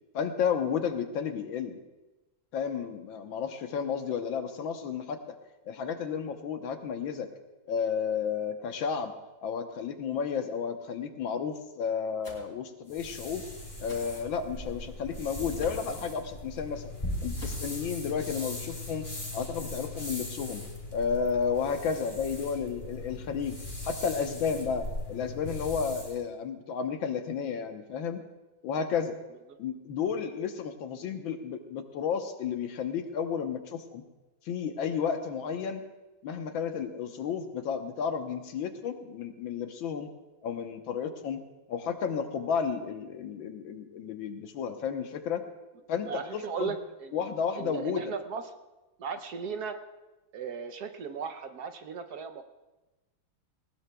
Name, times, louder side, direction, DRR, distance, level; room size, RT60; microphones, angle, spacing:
voice 1, 0.1-1.8 2.5-5.4 5.7-7.3 7.7-9.1 9.4-13.4 13.8-16.9 17.2-20.6 20.9-23.6 23.8-28.2 28.6-29.2 29.6-34.0 34.5-35.8 36.2-40.1 40.4-45.4 45.9-46.7 47.1-48.1, left 6 dB, 85° left, 6 dB, 1.8 m, -32 dB
sound 1, 12.2-12.4 13.9-14.1 15.5-15.9 17.3-17.7, left 1 dB, 30° left, 3.3 m, -41 dB
sound 2, 12.9-26.2, left 2 dB, 15° left, 2.4 m, -39 dB
voice 2, 46.0-47.2 47.6-48.4 49.0-49.8 50.3-52.4, right 6 dB, 65° right, 7 dB, 1.1 m, -36 dB
19.0 x 18.5 x 2.3 m, 1.1 s
omnidirectional pair, 2.1 m